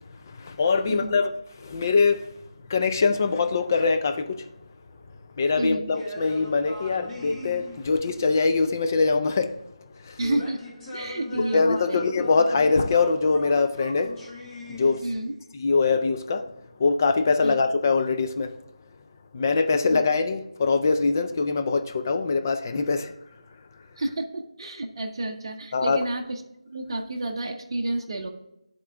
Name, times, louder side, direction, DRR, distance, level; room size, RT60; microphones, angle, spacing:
voice 1, 0.3-2.3 2.7-4.5 5.4-9.5 10.0-10.2 11.4-14.1 14.7-15.0 15.6-16.5 16.8-18.6 19.3-23.1 25.7-26.0, left 4 dB, 30° left, 0.4 m, -23 dB
voice 2, 0.9-1.2 5.6-5.9 10.2-10.6 10.9-12.1 15.0-15.3 17.4-17.6 19.9-20.0 24.0-28.3, right 1 dB, 45° right, 0.7 m, -30 dB
sound 1, 5.9-8.3 10.2-15.5, left 1 dB, 10° left, 0.9 m, -40 dB
9.7 x 3.8 x 3.4 m
figure-of-eight pair, 165°, 3 cm